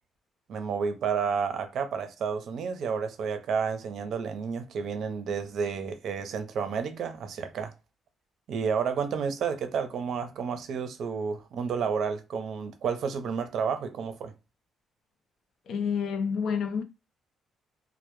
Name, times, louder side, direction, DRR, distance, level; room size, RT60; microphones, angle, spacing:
voice 1, 0.5-7.7 8.5-14.3, right 6 dB, 70° right, 0.5 m, -31 dB
voice 2, 15.7-16.8, left 6 dB, 70° left, 0.4 m, -28 dB
2.0 x 2.0 x 3.0 m
cardioid pair, 90°, 0 cm